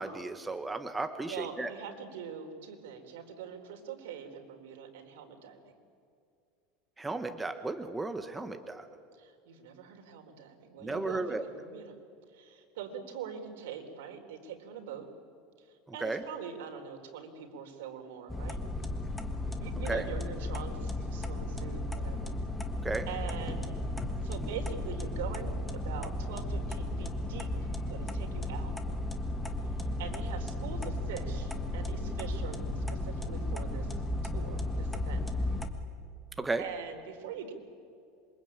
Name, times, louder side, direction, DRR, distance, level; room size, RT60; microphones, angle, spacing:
voice 1, 0.0-1.7 7.0-8.8 10.8-11.4 15.9-16.2 19.9-20.0 22.8-23.1 36.4-36.6, right 3 dB, 10° right, 7 dB, 1.1 m, -34 dB
voice 2, 1.3-5.7 9.2-12.0 12.3-15.1 15.6-15.7 15.9-18.6 19.6-22.4 23.1-23.7 24.2-27.5 27.9-28.7 30.0-34.0 34.3-35.2 36.6-37.5, right 7 dB, 90° right, 4 dB, 4.1 m, -43 dB
sound 1, 18.3-35.7, left 1 dB, 5° left, 1.6 m, -34 dB
27.0 x 24.0 x 8.9 m, 2.4 s
supercardioid pair, 165°, 0 cm